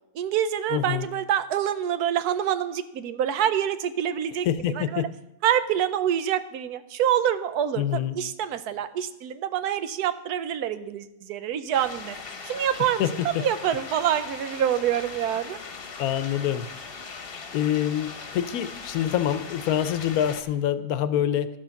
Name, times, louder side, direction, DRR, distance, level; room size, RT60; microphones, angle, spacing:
voice 1, 0.1-5.1 5.4-12.2 12.4-13.1 13.4-15.6, right 10 dB, 85° right, 12 dB, 1.2 m, -26 dB
voice 2, 0.7-1.1 4.4-5.1 7.8-8.2 13.0-13.1 13.3-13.4 16.0-16.7 17.2-21.5, left 10 dB, 75° left, 13 dB, 1.1 m, -26 dB
sound 1, 11.7-20.4, left 5 dB, 45° left, 1.0 m, -40 dB
12.5 x 6.3 x 5.8 m, 0.89 s
omnidirectional pair, 1.6 m